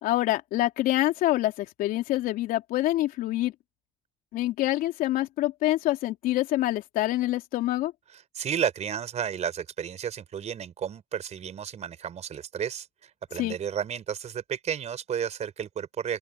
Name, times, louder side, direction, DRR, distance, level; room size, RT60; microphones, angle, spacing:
voice 1, 0.0-3.5 4.3-7.9 13.4-13.5, left 15 dB, 70° left, 3.7 m, -26 dB
voice 2, 8.1-16.2, right 8 dB, 50° right, 4.4 m, -32 dB
open air
supercardioid pair, 70°, 15 cm